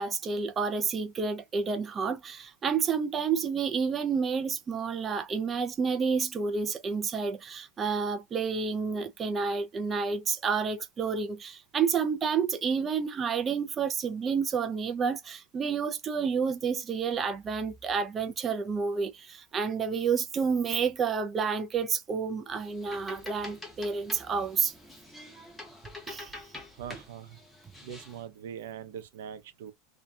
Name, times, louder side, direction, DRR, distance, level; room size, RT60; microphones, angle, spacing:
voice 1, 0.0-24.7 26.1-26.4, right 5 dB, 20° right, 0.3 m, -30 dB
sound 1, 22.6-28.2, left 2 dB, 5° left, 0.7 m, -46 dB
voice 2, 26.7-27.4 27.8-29.7, right 9 dB, 80° right, 0.6 m, -42 dB
2.6 x 2.2 x 2.2 m
supercardioid pair, 155°, 0 cm